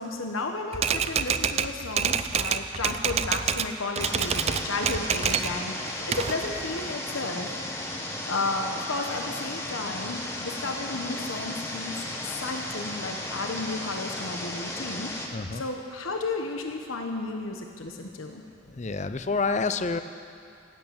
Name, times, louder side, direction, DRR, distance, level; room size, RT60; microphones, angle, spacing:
voice 1, 0.0-7.6 8.2-12.0 12.2-15.1 15.5-18.4, left 3 dB, 85° left, 3 dB, 1.1 m, -33 dB
Typewriter, 0.7-3.7 4.0-5.6 5.9-6.9, right 7 dB, 30° right, 0.4 m, -27 dB
sound 1, 4.0-15.3, left 1 dB, 15° left, 1.3 m, -35 dB
voice 2, 15.3-15.6 18.7-20.0, left 4 dB, 35° left, 10 dB, 0.6 m, -28 dB
16.5 x 8.6 x 8.8 m, 2.5 s
head